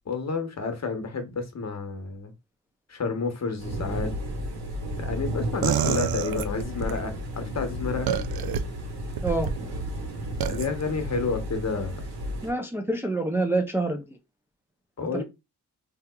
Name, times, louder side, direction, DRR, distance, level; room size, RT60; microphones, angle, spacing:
voice 1, 0.1-2.3 2.9-4.1 5.0-8.1 10.5-12.0 15.0-15.2, left 4 dB, 45° left, 1.0 m, -30 dB
sound 1, 3.6-12.5, equal, 85° right, 1.6 m, -33 dB
sound 2, 5.6-7.0 8.1-8.6 9.2-9.5 10.4-10.7, right 8 dB, 65° right, 0.5 m, -27 dB
voice 2, 12.4-14.0 15.0-15.2, right 2 dB, 5° right, 0.5 m, -27 dB
3.5 x 2.8 x 2.3 m
cardioid pair, 55°, 39 cm